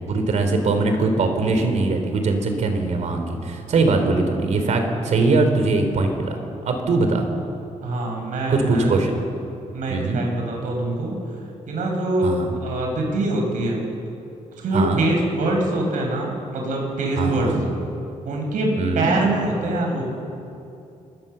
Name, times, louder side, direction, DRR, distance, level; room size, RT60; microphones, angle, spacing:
voice 1, 0.0-6.4 6.6-7.3 8.5-9.2 9.9-10.2 12.2-12.5 14.7-15.0 17.2-17.6 18.8-19.2, right 3 dB, 65° right, 6 dB, 3.7 m, -21 dB
voice 2, 5.0-5.4 7.8-9.0 9.7-11.2 11.7-13.8 14.6-17.5 18.2-18.7 18.9-20.0, right 2 dB, 85° right, 1 dB, 6.6 m, -24 dB
26.5 x 22.5 x 7.0 m, 2.7 s
wide cardioid pair, 140°, 13 cm